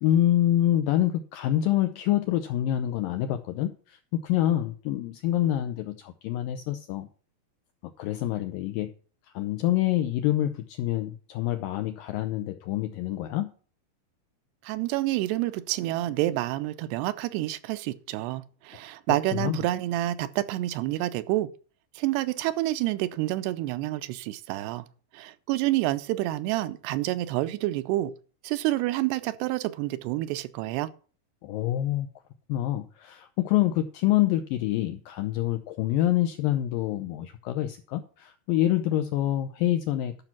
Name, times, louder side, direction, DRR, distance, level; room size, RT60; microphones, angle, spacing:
voice 1, 0.0-7.1 8.0-8.9 9.3-13.5 19.4-19.6 31.4-32.1 32.5-40.2, left 13 dB, 85° left, 2.0 m, -26 dB
voice 2, 14.6-21.5 22.0-24.9 25.1-28.1 28.4-30.9, right 16 dB, 85° right, 2.7 m, -28 dB
12.0 x 6.0 x 5.9 m
omnidirectional pair, 4.7 m